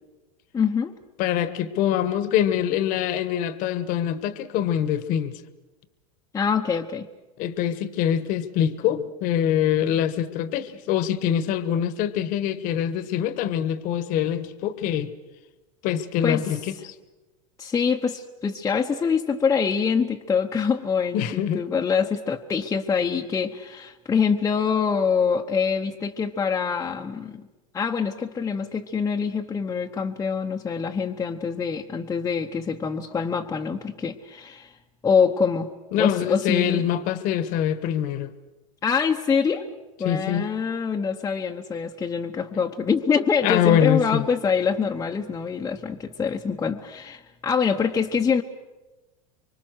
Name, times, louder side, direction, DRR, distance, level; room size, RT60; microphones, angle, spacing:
voice 1, 0.5-0.9 6.3-7.1 16.2-16.4 17.6-27.5 27.7-34.8 35.0-35.7 36.0-36.8 38.8-39.7 40.0-48.4, left 6 dB, 15° left, 1.0 m, -25 dB
voice 2, 1.2-5.4 7.4-15.1 15.8-16.9 21.1-21.6 35.9-38.3 40.0-40.5 43.4-44.3, left 10 dB, 50° left, 1.4 m, -24 dB
25.0 x 24.0 x 6.4 m
supercardioid pair, 130°, 18 cm